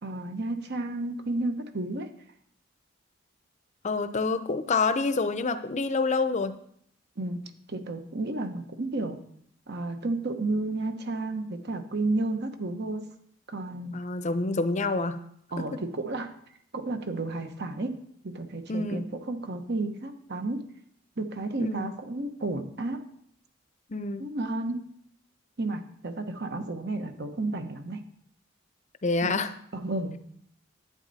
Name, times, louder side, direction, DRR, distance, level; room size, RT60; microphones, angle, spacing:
voice 1, 0.0-2.1 7.2-7.4 7.7-9.2 9.7-13.1 13.5-13.9 15.5-16.3 16.7-18.0 18.2-20.6 21.2-23.0 24.2-24.9 25.6-28.0 29.2-29.4 29.7-30.2, right 2 dB, 55° right, 7 dB, 1.0 m, -32 dB
voice 2, 3.8-6.6 13.9-15.2 15.6-15.7 18.7-19.1 21.6-21.9 23.9-24.3 29.0-29.5, left 3 dB, 35° left, 11 dB, 0.6 m, -27 dB
11.0 x 8.7 x 4.1 m, 0.68 s
head